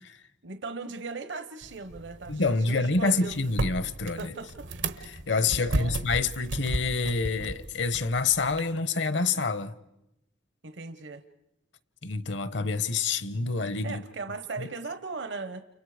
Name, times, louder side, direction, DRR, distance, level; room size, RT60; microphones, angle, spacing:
voice 1, 0.4-3.5 4.2-4.7 5.7-5.9 10.6-11.2 13.8-15.6, right 4 dB, 70° right, 1.0 m, -38 dB
sound 1, 1.6-8.6, right 2 dB, 90° right, 1.4 m, -35 dB
voice 2, 2.3-4.3 5.1-9.7 12.0-14.0 14.6-14.7, left 4 dB, 70° left, 1.0 m, -27 dB
30.0 x 29.0 x 5.0 m
head